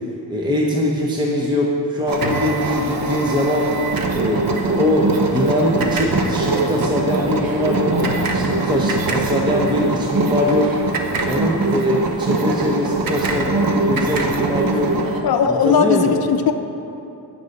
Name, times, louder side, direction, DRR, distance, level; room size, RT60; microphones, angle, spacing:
voice 1, 0.3-3.7 4.1-14.9 15.4-16.1, left 1 dB, 10° right, -3 dB, 0.8 m, -22 dB
sound 1, 2.1-15.2, right 3 dB, 55° right, 1.0 m, -22 dB
voice 2, 15.2-16.5, left 7 dB, 60° left, 6 dB, 0.6 m, -17 dB
9.4 x 5.4 x 8.2 m, 2.9 s
wide cardioid pair, 145°, 42 cm